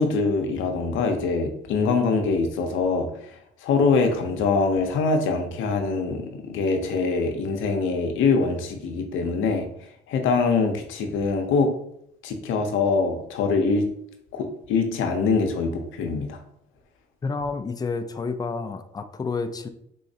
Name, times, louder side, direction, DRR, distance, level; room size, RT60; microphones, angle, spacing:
voice 1, 0.0-3.4 3.6-9.7 10.1-11.7 12.2-13.9 14.3-16.4, left 4 dB, 85° left, 5 dB, 0.6 m, -23 dB
voice 2, 17.2-19.7, left 4 dB, 20° left, 8 dB, 0.4 m, -29 dB
3.6 x 3.1 x 2.7 m, 0.72 s
cardioid pair, 90°, 20 cm